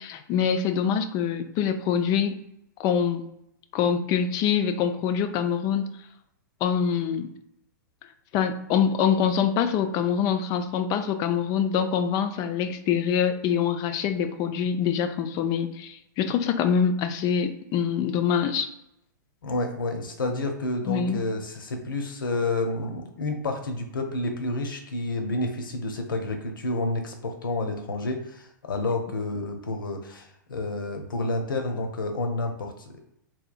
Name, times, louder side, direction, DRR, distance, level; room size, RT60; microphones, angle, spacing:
voice 1, 0.0-2.4 2.8-3.2 3.7-5.9 6.6-7.3 8.3-18.7 20.9-21.2, left 7 dB, 35° left, 9 dB, 0.4 m, -25 dB
voice 2, 19.4-33.0, left 2 dB, 85° left, 4 dB, 0.7 m, -29 dB
3.7 x 2.7 x 2.5 m, 0.79 s
hypercardioid pair, 115°, 11 cm